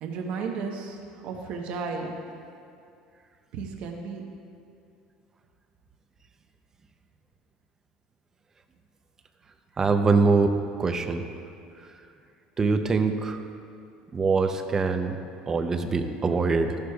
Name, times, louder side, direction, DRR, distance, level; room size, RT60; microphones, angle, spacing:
voice 1, 0.0-2.2 3.5-4.2, right 5 dB, 60° right, 1 dB, 1.1 m, -34 dB
voice 2, 9.8-10.5 10.8-11.2 12.6-13.4 14.1-15.2 15.5-16.8, right 4 dB, 20° right, 7 dB, 0.6 m, -23 dB
13.5 x 11.0 x 2.4 m, 2.5 s
cardioid pair, 135°, 2 cm